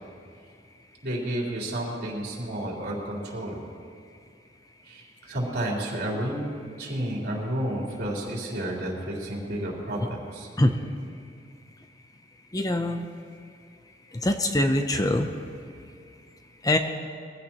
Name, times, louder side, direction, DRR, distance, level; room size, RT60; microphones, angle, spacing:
voice 1, 1.0-3.6 4.9-6.5 6.8-10.5, right 1 dB, 60° right, -4 dB, 3.8 m, -31 dB
voice 2, 12.5-13.0 14.2-15.3 16.6-16.8, left 1 dB, 20° left, 6 dB, 0.7 m, -23 dB
22.5 x 16.0 x 3.0 m, 2.3 s
head